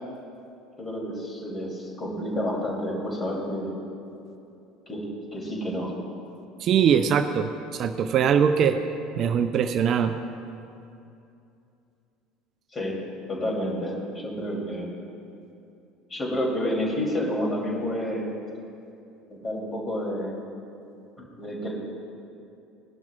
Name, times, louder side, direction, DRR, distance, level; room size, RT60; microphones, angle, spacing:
voice 1, 0.8-3.7 4.9-5.9 12.7-12.9 13.3-14.9 16.1-18.2 19.3-20.3 21.2-21.7, equal, 25° left, -2 dB, 3.1 m, -29 dB
voice 2, 6.6-8.8 9.2-10.2, right 7 dB, 45° right, 9 dB, 0.4 m, -22 dB
19.0 x 11.5 x 2.4 m, 2.7 s
figure-of-eight pair, 65°, 0 cm